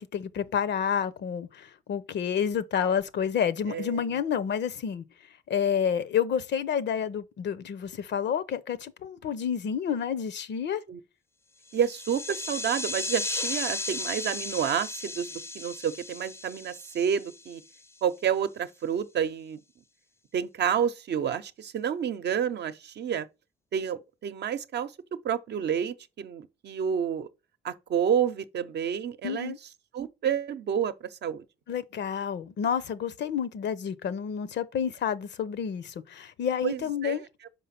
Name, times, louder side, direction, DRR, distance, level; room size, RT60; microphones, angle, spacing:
voice 1, 0.0-5.0 5.5-10.8 29.2-29.6 31.7-37.2, left 8 dB, 65° left, 0.8 m, -29 dB
voice 2, 3.7-4.0 10.9-11.0 11.7-17.6 18.0-19.6 20.3-23.3 23.7-27.3 27.6-29.5 29.9-31.4 36.6-37.3, right 8 dB, 60° right, 0.8 m, -29 dB
sound 1, 11.7-17.7, left 2 dB, 15° left, 0.5 m, -35 dB
5.4 x 5.1 x 5.8 m
cardioid pair, 90°, 20 cm